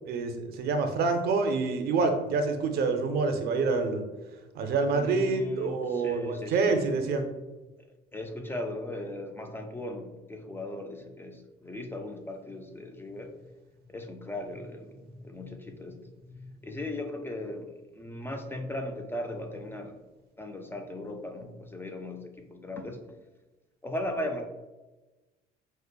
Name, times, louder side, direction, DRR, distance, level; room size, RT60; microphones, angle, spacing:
voice 1, 0.1-4.0 4.5-7.3, right 4 dB, 70° right, 6 dB, 0.5 m, -27 dB
voice 2, 4.9-6.8 8.1-13.5 13.9-20.0 20.4-23.0 23.8-24.4, left 1 dB, 15° left, 4 dB, 0.3 m, -38 dB
5.0 x 2.1 x 2.3 m, 1.1 s
cardioid pair, 110°, 17 cm